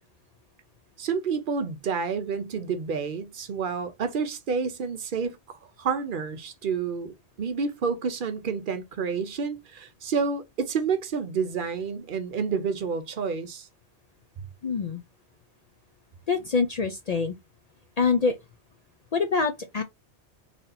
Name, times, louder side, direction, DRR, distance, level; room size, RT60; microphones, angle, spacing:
voice 1, 1.0-13.7, right 5 dB, 55° right, 0.7 m, -29 dB
voice 2, 14.6-15.0 16.3-17.3 18.0-18.4 19.1-19.8, left 5 dB, 55° left, 0.4 m, -25 dB
3.3 x 2.7 x 3.8 m
omnidirectional pair, 1.2 m